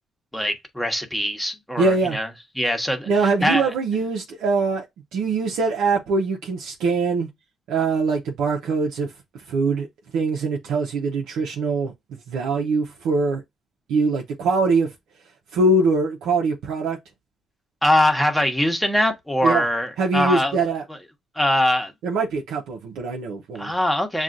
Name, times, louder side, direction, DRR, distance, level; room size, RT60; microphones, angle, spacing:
voice 1, 0.3-2.3 2.5-3.1 3.4-3.7 17.8-20.6 21.3-21.9 23.5-24.2, left 1 dB, 5° left, 1.1 m, -22 dB
voice 2, 1.8-2.2 3.1-4.8 5.1-7.3 7.7-9.1 9.5-9.9 10.1-11.9 12.3-13.4 13.9-14.9 15.5-17.0 19.4-19.6 20.0-20.8 22.0-23.7, right 3 dB, 85° right, 0.8 m, -22 dB
7.1 x 2.4 x 2.5 m
cardioid pair, 90°, 0 cm